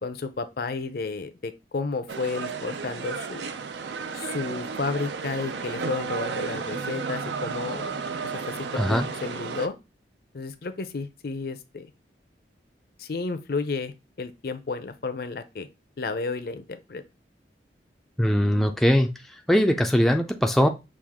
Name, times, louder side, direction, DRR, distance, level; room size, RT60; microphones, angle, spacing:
voice 1, 0.0-3.4 4.1-8.0 8.3-9.7 10.3-11.9 13.0-15.7 16.0-16.6 16.9-17.0, left 4 dB, 55° left, 0.5 m, -32 dB
sound 1, 2.1-9.7, right 5 dB, 75° right, 0.5 m, -33 dB
voice 2, 8.8-9.1 18.2-19.1 19.5-20.7, equal, ahead, 0.4 m, -21 dB
6.2 x 2.4 x 3.5 m
head